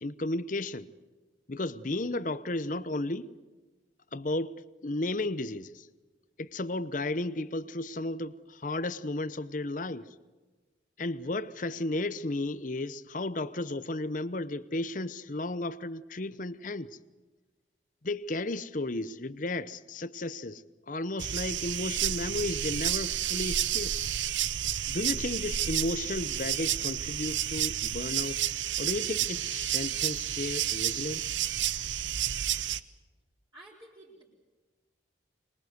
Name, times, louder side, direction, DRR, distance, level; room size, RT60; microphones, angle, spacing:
voice 1, 0.0-0.9 1.5-3.3 4.1-5.9 6.4-10.1 11.0-17.0 18.0-23.9 24.9-28.4 28.8-31.4, left 2 dB, 45° left, 0.8 m, -34 dB
sound 1, 21.2-32.8, right 11 dB, 85° right, 0.8 m, -31 dB
voice 2, 33.5-34.2, right 1 dB, 20° right, 4.4 m, -51 dB
25.0 x 22.0 x 7.9 m
head